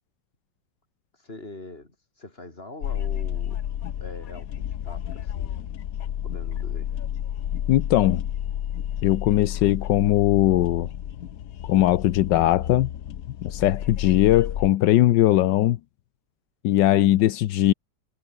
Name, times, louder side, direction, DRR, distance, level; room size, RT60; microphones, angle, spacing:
voice 1, 1.1-3.7 4.0-5.6 6.2-6.9, left 2 dB, 35° left, 4.8 m, -43 dB
sound 1, 2.8-14.7, left 10 dB, 60° left, 1.2 m, -31 dB
voice 2, 7.7-8.2 9.0-10.9 11.6-12.9 13.4-15.8 16.6-17.7, left 14 dB, 85° left, 1.4 m, -20 dB
omnidirectional pair, 1.9 m